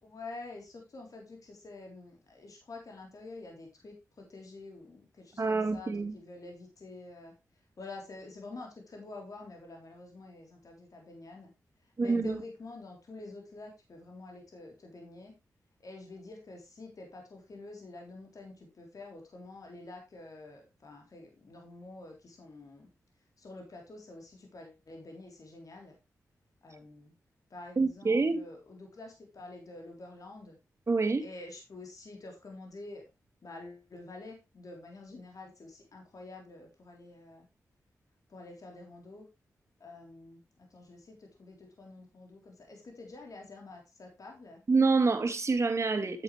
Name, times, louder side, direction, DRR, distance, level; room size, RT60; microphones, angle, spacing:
voice 1, 0.0-7.3 7.8-11.5 12.0-15.3 15.8-22.9 23.4-25.9 26.6-27.1 27.5-30.6 31.2-33.0 33.4-37.5 38.3-39.3 39.8-44.6, left 2 dB, 60° left, 3.5 m, -48 dB
voice 2, 5.4-6.2 12.0-12.4 27.8-28.4 30.9-31.2 44.7-46.2, right 4 dB, 45° right, 2.0 m, -27 dB
9.7 x 8.2 x 3.2 m
cardioid pair, 45°, 7 cm